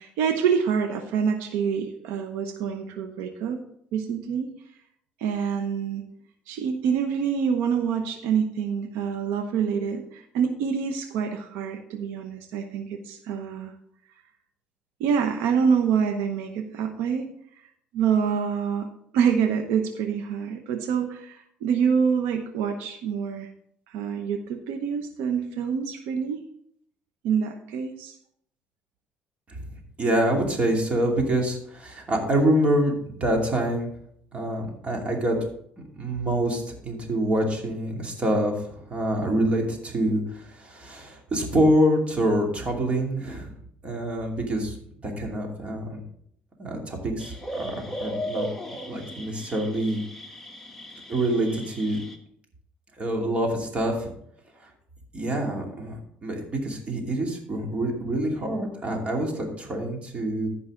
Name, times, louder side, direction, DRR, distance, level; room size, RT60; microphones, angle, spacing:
voice 1, 0.0-3.6 3.9-4.5 5.2-6.0 6.5-13.7 15.0-17.2 17.9-18.9 19.1-23.5 23.9-26.4 27.2-28.1, right 7 dB, 90° right, 6 dB, 0.9 m, -26 dB
voice 2, 30.0-33.9 34.3-35.4 36.0-43.5 43.8-44.8 45.0-46.0 46.6-48.5 48.8-50.0 51.1-52.0 53.0-54.1 55.1-60.5, right 1 dB, 35° right, 1 dB, 2.6 m, -26 dB
sound 1, 47.2-52.2, equal, 5° left, 1.3 m, -37 dB
14.5 x 5.6 x 3.7 m, 0.69 s
cardioid pair, 105°, 4 cm